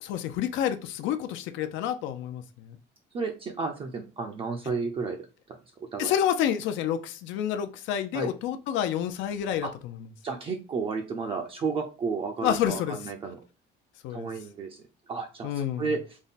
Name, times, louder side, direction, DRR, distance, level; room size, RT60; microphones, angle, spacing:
voice 1, 0.0-2.8 6.0-9.9 12.4-13.0 14.0-14.3 15.4-15.9, left 10 dB, 85° left, 8 dB, 0.5 m, -29 dB
voice 2, 3.1-5.2 5.9-6.1 8.1-8.3 9.6-9.7 10.2-13.4 14.1-14.8 15.1-16.0, right 4 dB, 30° right, 3 dB, 0.4 m, -32 dB
3.6 x 2.1 x 3.9 m, 0.33 s
cardioid pair, 175°, 19 cm